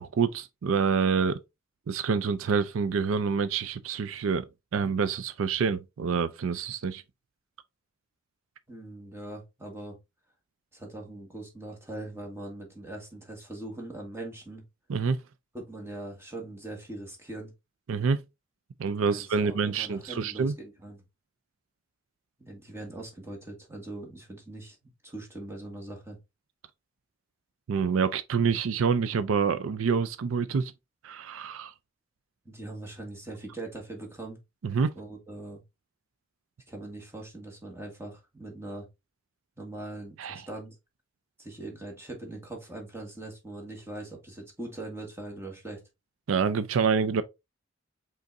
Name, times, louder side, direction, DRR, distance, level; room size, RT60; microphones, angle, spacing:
voice 1, 0.0-1.4 1.9-7.0 14.9-15.2 17.9-18.2 18.8-20.5 27.7-30.7 31.0-31.7 34.6-34.9 40.2-40.4 46.3-47.2, right 5 dB, 80° right, 0.4 m, -27 dB
voice 2, 8.7-10.0 10.7-14.6 15.5-17.5 19.0-21.0 22.4-26.2 32.4-34.4 34.9-35.6 36.7-38.9 39.6-40.7 41.4-45.8, right 2 dB, 10° right, 1.5 m, -41 dB
5.2 x 3.8 x 2.5 m
head